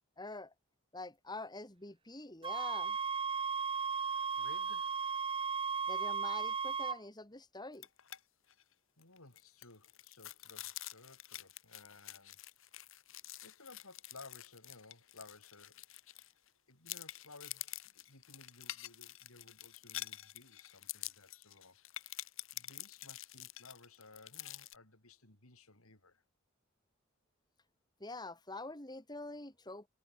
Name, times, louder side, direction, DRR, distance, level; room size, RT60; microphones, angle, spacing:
voice 1, 0.2-0.5 0.9-3.0 5.9-7.9 28.0-29.9, left 2 dB, 20° left, 3.3 m, -46 dB
sound 1, 2.4-7.0, right 6 dB, 25° right, 0.8 m, -35 dB
voice 2, 4.4-5.1 9.0-12.4 13.4-15.8 16.1-16.4 16.7-21.8 22.5-26.2, left 3 dB, 80° left, 5.6 m, -58 dB
sound 2, 7.7-8.2 8.5-8.6 9.0-16.5 16.9-24.8, left 14 dB, 65° left, 2.0 m, -48 dB
head